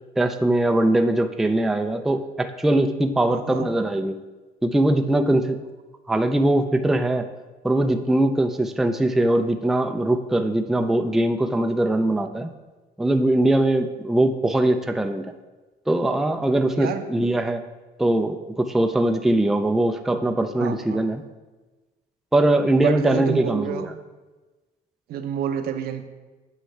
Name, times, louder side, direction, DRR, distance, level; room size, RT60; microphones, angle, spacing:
voice 1, 0.2-4.2 4.6-5.6 6.1-7.3 7.6-12.5 13.0-15.3 15.9-17.6 18.0-21.2 22.3-23.9, right 1 dB, ahead, 6 dB, 0.4 m, -21 dB
voice 2, 3.3-3.7 16.7-17.1 20.6-21.0 22.8-24.0 25.1-26.0, right 8 dB, 65° right, 8 dB, 0.7 m, -29 dB
8.9 x 5.6 x 3.2 m, 1.2 s
cardioid pair, 110°, 17 cm